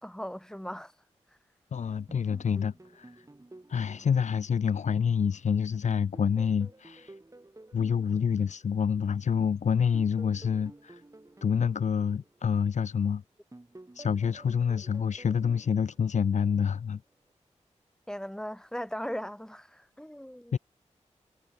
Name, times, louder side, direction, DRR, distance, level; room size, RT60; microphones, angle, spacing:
voice 1, 0.0-0.9 18.1-20.6, equal, 5° left, 3.2 m, -38 dB
voice 2, 1.7-3.1 3.7-7.1 7.7-11.0 11.4-13.2 14.0-17.0 20.5-20.6, left 7 dB, 70° left, 0.6 m, -27 dB
sound 1, 2.1-5.4 5.9-9.1 9.7-13.0 13.5-16.8, right 2 dB, 25° right, 3.9 m, -52 dB
cardioid pair, 50°, 13 cm